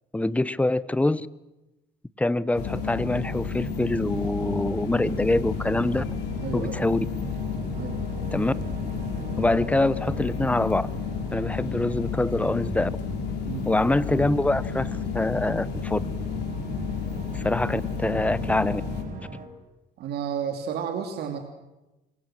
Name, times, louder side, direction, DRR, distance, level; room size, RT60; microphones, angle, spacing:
voice 1, 0.1-1.3 2.2-6.0 6.5-7.0 8.3-8.5 9.4-10.9 11.3-12.9 13.6-16.0 17.3-18.8, left 2 dB, 10° left, 18 dB, 0.9 m, -25 dB
sound 1, 2.5-19.0, left 6 dB, 80° left, 4.4 m, -31 dB
sound 2, 2.6-19.5, right 5 dB, 55° right, 5.0 m, -41 dB
voice 2, 6.4-6.8 7.7-8.0 13.4-13.7 20.0-21.4, right 8 dB, 70° right, 6 dB, 3.0 m, -32 dB
27.5 x 23.5 x 7.7 m, 1.0 s
cardioid pair, 110°, 17 cm